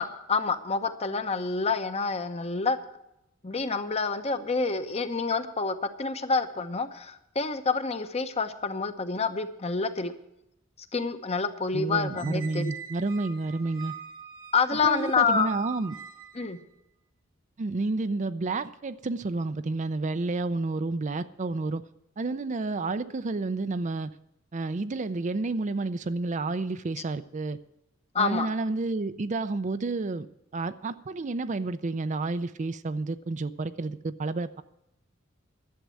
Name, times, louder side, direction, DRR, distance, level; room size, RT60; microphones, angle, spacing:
voice 1, 0.0-2.8 3.4-10.1 10.9-12.7 14.5-15.5 16.4-16.6 28.1-28.5, left 4 dB, 30° left, 9 dB, 0.9 m, -28 dB
voice 2, 11.7-13.9 14.7-16.0 17.6-21.8 22.2-24.1 24.5-27.6 28.2-30.3 30.5-34.6, right 3 dB, 35° right, 12 dB, 0.5 m, -30 dB
Squeak, 12.2-16.6, right 7 dB, 80° right, 1.9 m, -43 dB
11.5 x 7.4 x 9.5 m, 0.83 s
head